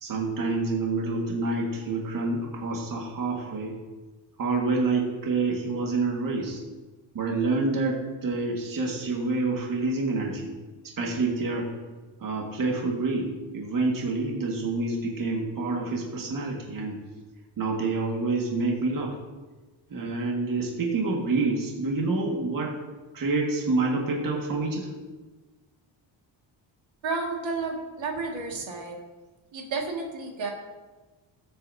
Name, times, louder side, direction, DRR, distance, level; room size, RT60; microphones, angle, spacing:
voice 1, 0.0-3.8 4.4-6.6 7.1-10.5 10.8-11.7 12.2-17.0 17.6-19.2 19.9-22.8 23.1-24.9, right 3 dB, 45° right, -1 dB, 1.8 m, -27 dB
voice 2, 27.0-29.0 29.5-30.5, right 3 dB, 70° right, 0 dB, 2.0 m, -31 dB
20.5 x 8.3 x 2.7 m, 1.2 s
wide cardioid pair, 160°, 47 cm